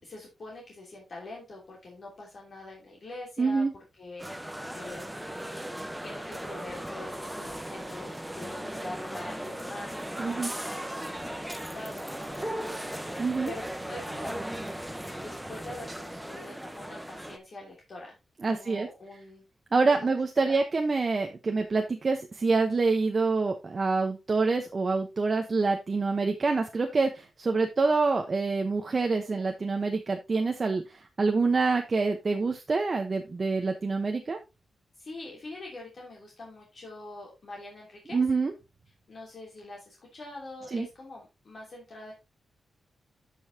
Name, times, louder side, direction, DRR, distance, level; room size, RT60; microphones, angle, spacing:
voice 1, 0.0-3.6 4.0-5.1 6.0-12.9 13.5-14.6 15.2-18.2 18.5-19.4 20.0-20.1 20.4-20.6 34.9-38.2 39.1-42.1, left 2 dB, 50° left, -3 dB, 3.1 m, -44 dB
voice 2, 3.4-3.7 10.2-10.5 13.2-13.5 18.4-18.9 19.7-34.4 38.1-38.5 40.7-40.9, right 4 dB, 35° right, 4 dB, 1.0 m, -26 dB
sound 1, 4.2-17.4, right 1 dB, 5° right, 1.0 m, -37 dB
12.5 x 5.5 x 2.8 m, 0.25 s
wide cardioid pair, 110°, 0 cm